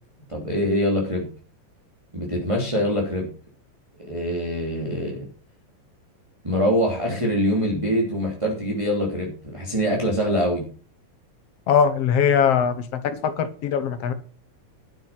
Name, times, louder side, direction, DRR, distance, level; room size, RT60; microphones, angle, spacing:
voice 1, 0.3-1.3 2.1-3.3 4.0-5.3 6.4-10.6, equal, 10° right, -2 dB, 2.9 m, -24 dB
voice 2, 11.7-12.8 13.0-14.1, left 7 dB, 60° left, 11 dB, 1.8 m, -20 dB
12.5 x 8.9 x 5.9 m, 0.38 s
omnidirectional pair, 3.8 m